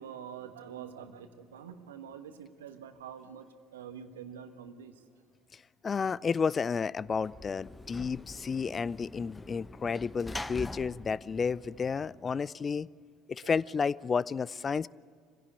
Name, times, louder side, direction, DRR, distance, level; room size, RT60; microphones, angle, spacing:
voice 1, 0.0-5.0 13.4-13.6, right 8 dB, 80° right, 8 dB, 1.3 m, -46 dB
voice 2, 5.8-12.9 13.3-14.9, left 5 dB, 30° left, 22 dB, 0.5 m, -31 dB
Sliding door / Slam, 7.0-12.4, left 2 dB, 15° left, 0.8 m, -44 dB
26.0 x 16.5 x 8.4 m, 2.3 s
figure-of-eight pair, 60°, 0 cm